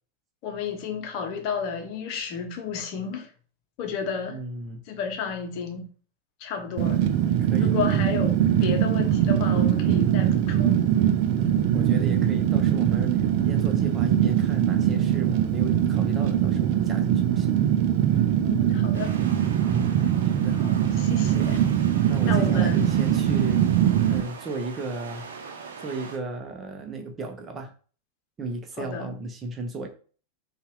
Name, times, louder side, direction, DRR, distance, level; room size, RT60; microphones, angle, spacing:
voice 1, 0.4-3.3 3.8-4.4 4.9-5.9 6.4-7.0 7.6-8.3 8.6-10.8 18.4-19.1 20.6-21.6 22.3-22.9 28.8-29.1, left 6 dB, 45° left, 0.8 m, -32 dB
voice 2, 4.3-4.8 7.4-8.1 11.4-17.6 19.6-20.0 20.2-20.6 22.1-23.6 24.1-25.3 25.8-27.7 28.4-29.9, right 3 dB, 20° right, 0.9 m, -34 dB
Fire, 6.8-24.2, right 10 dB, 45° right, 0.4 m, -22 dB
sound 1, 18.9-26.2, right 5 dB, 65° right, 0.8 m, -41 dB
5.5 x 2.4 x 3.2 m
figure-of-eight pair, 90°, 0 cm